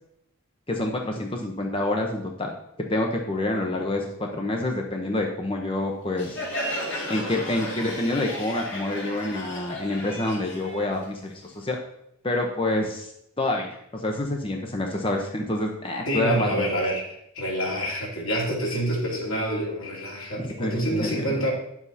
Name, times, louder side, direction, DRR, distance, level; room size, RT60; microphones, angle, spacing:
voice 1, 0.7-6.4 7.1-11.8 12.2-13.1 13.4-16.7 20.4-21.2, left 1 dB, 25° left, 1 dB, 0.8 m, -27 dB
Crowd, 6.2-11.6, equal, 60° left, 2.1 m, -34 dB
voice 2, 16.0-21.5, equal, 80° left, -1 dB, 2.6 m, -27 dB
9.4 x 7.1 x 4.2 m, 0.76 s
head